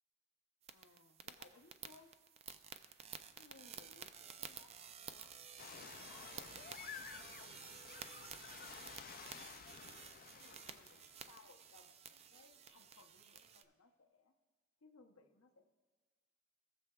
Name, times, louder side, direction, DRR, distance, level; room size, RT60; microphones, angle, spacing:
sound 1, 0.6-13.6, right 7 dB, 30° right, 0.3 m, -53 dB
voice 1, 0.7-2.1 3.3-5.4 5.9-6.6 7.0-8.7 10.3-14.3 14.8-15.7, left 3 dB, 75° left, 5 dB, 0.9 m, -65 dB
sound 2, 5.6-11.2, left 7 dB, 40° left, 0.4 m, -53 dB
18.5 x 7.0 x 2.4 m, 1.4 s
head